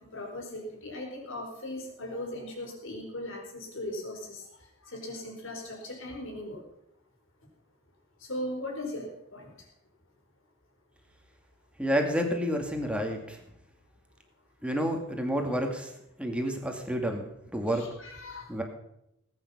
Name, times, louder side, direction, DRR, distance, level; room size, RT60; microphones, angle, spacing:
voice 1, 0.1-4.5 4.8-6.6 8.2-9.5 17.7-18.5, left 1 dB, 65° left, 0 dB, 4.6 m, -38 dB
voice 2, 11.8-13.4 14.6-15.9 16.2-17.8 18.5-18.6, equal, 5° right, 3 dB, 2.3 m, -29 dB
19.5 x 9.2 x 5.6 m, 0.80 s
head